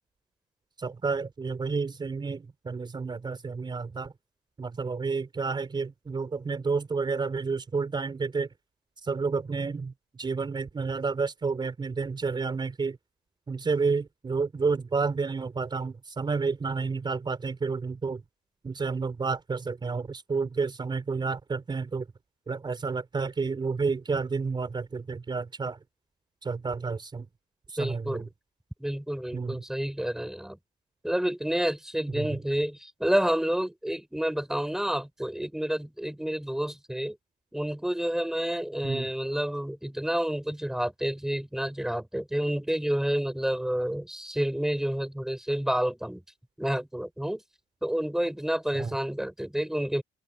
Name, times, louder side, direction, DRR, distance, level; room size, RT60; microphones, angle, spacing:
voice 1, 0.8-4.1 4.6-8.5 9.0-9.9 10.2-13.0 13.5-18.2 18.6-22.0 22.5-25.8 26.4-27.3 27.7-28.2 29.3-29.6 32.2-32.4 38.8-39.1 48.7-48.9, right 4 dB, 25° right, 4.8 m, -30 dB
voice 2, 27.8-28.2 28.8-30.6 31.0-37.2 37.5-46.2 46.6-47.4 47.8-50.0, equal, 5° right, 6.5 m, -29 dB
cardioid pair, 110°, 17 cm